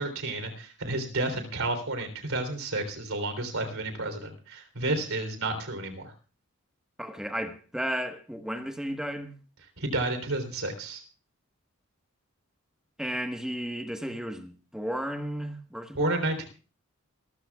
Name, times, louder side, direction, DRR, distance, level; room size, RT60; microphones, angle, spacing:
voice 1, 0.0-6.1 9.8-11.0 15.9-16.4, right 2 dB, 65° right, 3.6 m, -31 dB
voice 2, 7.0-9.3 13.0-16.3, equal, 5° right, 1.3 m, -34 dB
25.5 x 14.5 x 2.4 m
head